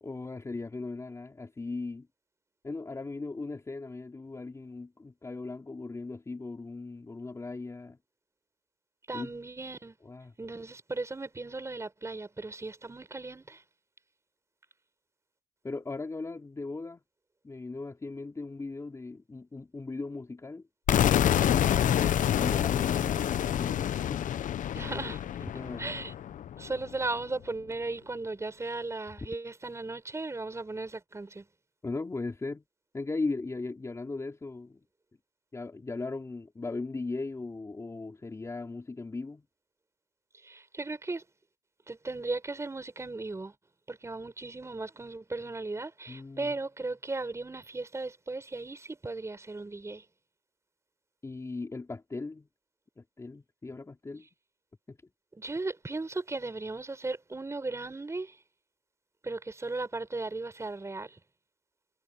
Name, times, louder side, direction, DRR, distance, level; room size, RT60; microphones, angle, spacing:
voice 1, 0.0-2.1 2.6-8.0 9.1-9.3 10.0-10.3 15.6-17.0 17.4-20.7 21.3-24.4 25.4-25.9 29.2-29.3 31.8-32.6 32.9-34.8 35.5-39.4 46.1-46.6 51.2-52.5 53.0-54.3 54.9-55.0, left 3 dB, 15° left, 2.7 m, -38 dB
voice 2, 9.1-10.0 10.4-13.6 24.7-25.2 25.8-26.1 26.6-31.5 40.4-41.2 41.9-43.5 43.9-50.0 55.4-58.4 59.2-61.2, right 3 dB, 15° right, 6.3 m, -36 dB
sound 1, 20.9-26.7, left 10 dB, 50° left, 0.9 m, -27 dB
cardioid pair, 110°, 17 cm